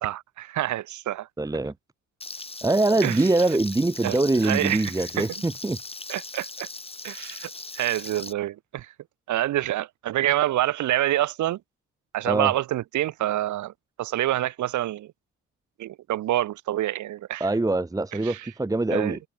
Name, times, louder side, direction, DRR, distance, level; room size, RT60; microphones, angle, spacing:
voice 1, 0.0-1.3 3.0-3.3 4.0-5.3 6.1-6.7 7.0-8.9 9.3-11.6 12.1-13.7 14.0-15.1 15.8-17.5 18.2-18.5 18.9-19.2, right 14 dB, 70° right, 1.1 m, -27 dB
voice 2, 1.4-1.7 2.6-5.8 12.2-12.5 17.4-19.2, right 2 dB, 10° right, 1.0 m, -23 dB
Frying (food), 2.2-8.3, left 3 dB, 20° left, 3.5 m, -39 dB
cardioid pair, 90°, 30 cm